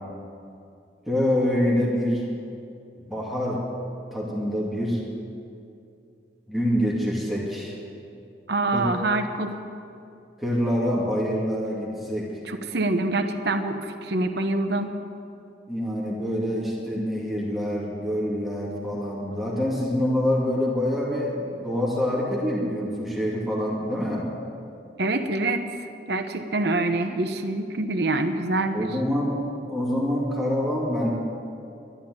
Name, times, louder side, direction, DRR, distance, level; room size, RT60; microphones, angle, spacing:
voice 1, 1.1-2.3 3.0-3.7 4.1-5.0 6.5-7.8 8.7-8.8 10.4-12.4 15.7-24.3 28.7-29.4 29.7-31.1, equal, ahead, -5 dB, 2.5 m, -26 dB
voice 2, 8.5-9.6 12.5-14.9 25.0-25.7 26.1-29.0, right 2 dB, 65° right, 6 dB, 1.0 m, -25 dB
12.5 x 11.0 x 9.9 m, 2.6 s
head